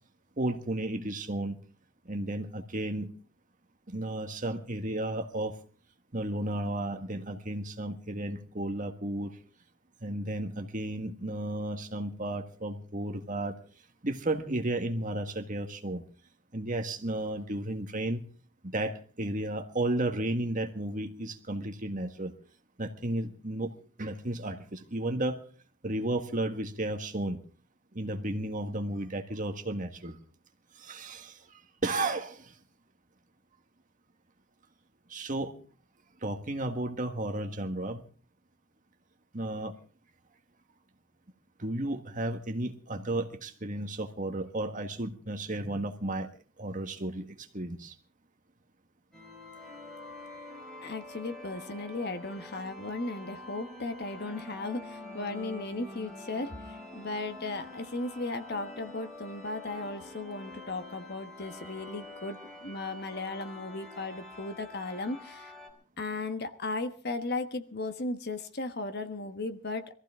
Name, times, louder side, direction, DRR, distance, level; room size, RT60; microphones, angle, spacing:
voice 1, 0.4-1.6 2.0-3.1 3.9-5.5 6.1-9.4 10.0-13.6 14.0-16.0 16.5-18.2 18.6-22.3 22.8-23.7 24.0-25.4 25.8-27.4 27.9-30.2 30.7-32.6 35.1-35.5 36.2-38.0 39.3-39.7 41.6-46.3 46.6-47.9, right 1 dB, 40° right, 6 dB, 1.6 m, -33 dB
sound 1, 49.1-65.7, left 2 dB, 5° left, 4.5 m, -46 dB
voice 2, 50.8-65.5 66.0-69.9, left 2 dB, 50° left, 9 dB, 1.3 m, -36 dB
23.0 x 15.0 x 3.7 m, 0.40 s
head